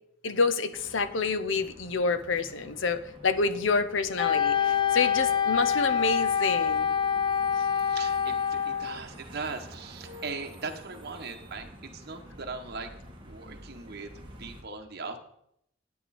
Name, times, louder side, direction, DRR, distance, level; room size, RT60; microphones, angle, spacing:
voice 1, 0.2-6.9, left 4 dB, 75° left, 12 dB, 0.8 m, -28 dB
sound 1, 0.7-14.6, equal, 25° right, 2.0 m, -49 dB
Wind instrument woodwind instrument, 4.2-9.0, left 8 dB, 25° left, 0.5 m, -26 dB
voice 2, 7.7-12.9 13.2-15.2, right 4 dB, 55° right, 4 dB, 1.4 m, -39 dB
11.5 x 9.4 x 4.3 m, 0.73 s
head